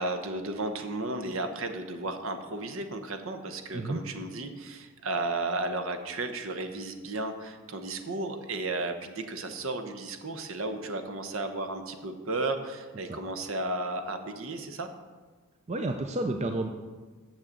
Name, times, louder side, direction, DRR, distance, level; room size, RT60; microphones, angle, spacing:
voice 1, 0.0-14.9, right 2 dB, 65° right, 7 dB, 0.9 m, -34 dB
voice 2, 15.7-16.7, right 2 dB, 30° right, 5 dB, 0.4 m, -30 dB
6.6 x 6.3 x 7.5 m, 1.3 s
head